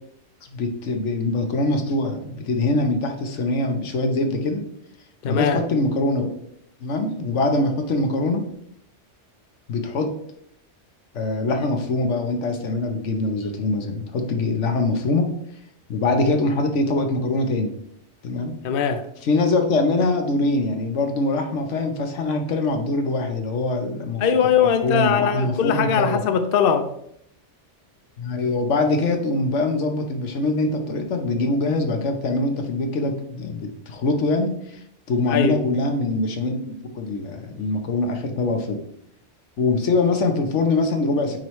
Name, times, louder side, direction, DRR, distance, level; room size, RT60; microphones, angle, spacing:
voice 1, 0.5-4.6 5.2-6.3 6.8-8.4 9.7-10.1 11.1-15.3 15.9-17.8 18.2-18.5 19.2-24.2 24.8-26.3 28.2-34.8 35.1-38.8 39.6-41.4, left 2 dB, 75° left, 5 dB, 1.2 m, -23 dB
voice 2, 5.2-5.6 18.6-19.0 24.2-26.9 35.3-35.6, left 7 dB, 60° left, 8 dB, 0.7 m, -20 dB
9.0 x 4.6 x 3.2 m, 0.72 s
omnidirectional pair, 1.2 m